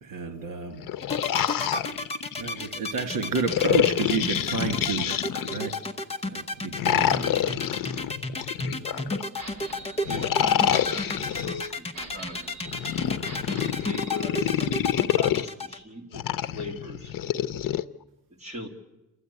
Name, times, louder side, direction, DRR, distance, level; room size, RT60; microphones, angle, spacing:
voice 1, 0.0-0.8 2.4-5.2 5.4-5.8 6.2-7.2 8.7-8.8, right 4 dB, 75° right, 7 dB, 2.4 m, -30 dB
sound 1, 0.7-2.7 3.5-5.8 6.7-9.3 10.1-11.7 12.7-15.5 16.1-17.8, left 11 dB, 80° left, 0.7 m, -27 dB
sound 2, 1.0-15.8, left 2 dB, 20° left, 0.8 m, -31 dB
voice 2, 6.9-9.4 9.9-12.5 13.3-14.7 15.1-17.5 18.4-18.7, left 1 dB, 20° right, -1 dB, 2.7 m, -41 dB
sound 3, 9.4-14.2, right 3 dB, 50° right, 5.4 m, -44 dB
28.0 x 13.0 x 9.5 m, 1.0 s
wide cardioid pair, 180°, 33 cm